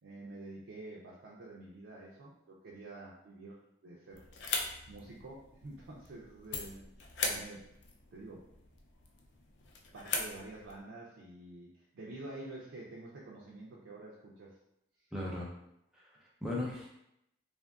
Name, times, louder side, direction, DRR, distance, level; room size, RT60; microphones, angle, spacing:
voice 1, 0.0-4.3 4.9-6.9 7.2-7.6 8.1-8.4 9.9-14.6, right 2 dB, 85° right, -5 dB, 0.4 m, -48 dB
sound 1, 4.1-10.8, left 4 dB, 70° left, 0.4 m, -40 dB
voice 2, 15.1-15.5 15.9-16.9, left 2 dB, 5° right, -5 dB, 0.3 m, -38 dB
2.8 x 2.4 x 2.3 m, 0.80 s
head